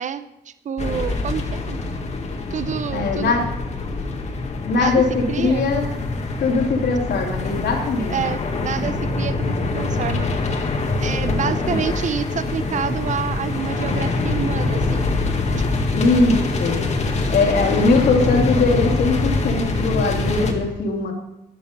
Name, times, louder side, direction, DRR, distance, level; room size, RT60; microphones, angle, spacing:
voice 1, 0.0-1.8 2.5-3.3 4.8-5.0 5.3-5.7 8.1-10.3 11.0-15.1, right 7 dB, 45° right, 12 dB, 0.7 m, -28 dB
sound 1, 0.8-20.5, left 3 dB, 40° left, 1.7 m, -24 dB
voice 2, 2.9-3.5 4.7-5.9 6.4-8.2 11.2-11.9 15.9-16.8 17.3-21.1, left 3 dB, 70° left, 1 dB, 3.2 m, -20 dB
13.5 x 11.0 x 5.3 m, 0.91 s
wide cardioid pair, 175°, 18 cm